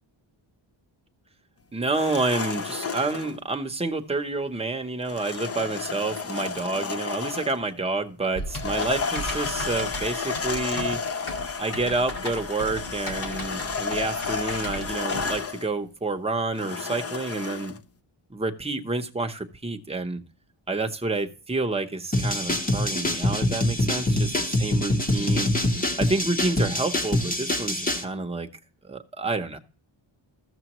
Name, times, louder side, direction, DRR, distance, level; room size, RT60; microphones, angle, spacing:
voice 1, 1.7-11.0 11.6-17.7 18.3-20.2 20.7-25.5 26.0-28.5 28.8-29.6, right 3 dB, 15° right, 5 dB, 0.7 m, -29 dB
sound 1, 1.9-3.4 5.1-7.7 8.5-15.7 16.6-17.8, left 5 dB, 35° left, 0.4 m, -32 dB
Typing, 8.3-15.4, left 1 dB, 80° left, 2.1 m, -36 dB
sound 2, 22.1-28.0, left 1 dB, 20° left, 0.8 m, -25 dB
14.0 x 6.8 x 2.9 m, 0.38 s
wide cardioid pair, 165°, 49 cm